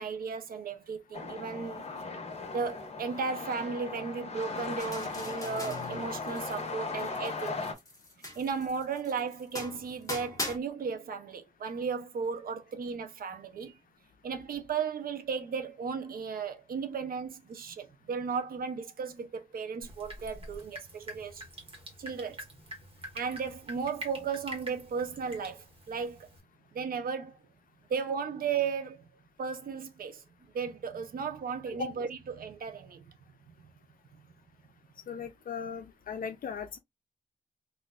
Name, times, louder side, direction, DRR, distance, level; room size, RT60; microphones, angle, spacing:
voice 1, 0.0-1.8 2.2-7.7 8.4-13.8 14.2-21.4 22.0-22.4 23.1-26.3 26.7-27.4 27.9-29.1 29.4-33.1, right 5 dB, 85° right, 0.6 m, -35 dB
sound 1, 1.1-7.7, left 4 dB, 45° left, 1.0 m, -38 dB
sound 2, 4.8-6.7 7.0-10.6, left 1 dB, 20° left, 1.3 m, -41 dB
Drip, 19.8-26.4, right 1 dB, 40° right, 1.4 m, -46 dB
voice 2, 35.1-36.8, left 7 dB, 75° left, 0.5 m, -38 dB
4.1 x 2.5 x 2.3 m
wide cardioid pair, 115°, 15 cm